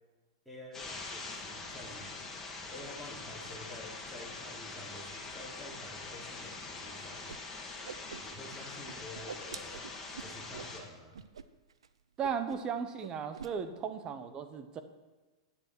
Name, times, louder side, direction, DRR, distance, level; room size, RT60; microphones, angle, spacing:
voice 1, 0.5-2.2 2.7-7.3 8.2-9.8 10.2-11.2, left 1 dB, ahead, -3 dB, 3.5 m, -49 dB
sound 1, 0.7-10.8, left 3 dB, 15° left, 2.6 m, -44 dB
Whoosh swoosh swish, 7.3-7.4 7.7-8.6 8.8-10.7 11.1-11.4 11.7-11.9 12.2-12.7 13.0-13.5, right 6 dB, 85° right, 0.6 m, -46 dB
voice 2, 12.2-14.8, right 6 dB, 30° right, 9 dB, 1.0 m, -36 dB
10.5 x 10.0 x 4.6 m, 1.2 s
hypercardioid pair, 110°, 3 cm